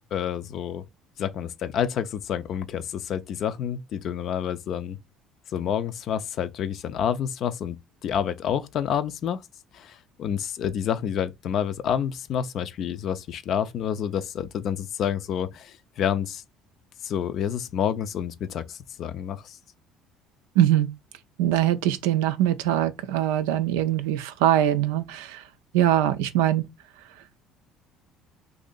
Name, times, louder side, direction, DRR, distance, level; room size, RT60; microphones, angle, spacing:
voice 1, 0.1-0.8 1.2-5.0 5.5-9.4 9.7-16.4 17.0-19.6, left 8 dB, 55° left, 0.4 m, -29 dB
voice 2, 20.6-20.9 21.4-25.4 25.7-26.7, right 12 dB, 75° right, 0.4 m, -22 dB
2.7 x 2.6 x 3.7 m
hypercardioid pair, 60°, 0 cm